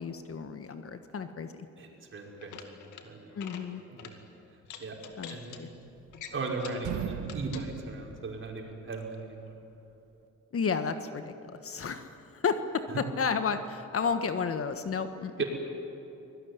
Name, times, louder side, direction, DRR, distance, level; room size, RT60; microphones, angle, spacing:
voice 1, 0.0-1.7 3.3-3.8 5.2-5.7 10.5-15.4, left 5 dB, 50° left, 9 dB, 1.5 m, -32 dB
voice 2, 1.8-2.7 3.0-3.3 3.9-4.2 4.8-5.0 5.3-5.6 6.3-9.5 15.4-15.5, right 3 dB, 40° right, 0 dB, 5.4 m, -37 dB
sound 1, 2.3-3.0 3.3-3.6 4.0-4.1 4.6-5.6 6.1-6.9 7.2-7.7, left 8 dB, 85° left, 2.2 m, -45 dB
sound 2, 5.6-6.4 6.7-8.9, right 8 dB, 90° right, 1.9 m, -38 dB
24.5 x 19.5 x 9.7 m, 2.9 s
cardioid pair, 90°, 30 cm